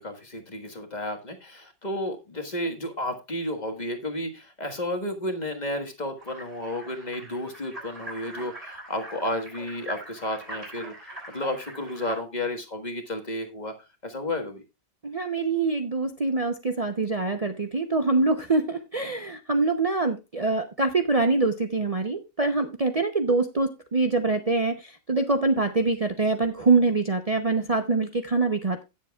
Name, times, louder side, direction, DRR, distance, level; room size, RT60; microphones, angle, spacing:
voice 1, 0.0-13.7 14.0-14.6, left 1 dB, 25° left, 4 dB, 1.5 m, -32 dB
sound 1, 6.2-12.2, right 1 dB, 35° right, 6.4 m, -42 dB
voice 2, 15.0-28.8, right 3 dB, 70° right, 7 dB, 0.3 m, -24 dB
16.5 x 7.4 x 2.3 m, 0.25 s
omnidirectional pair, 1.9 m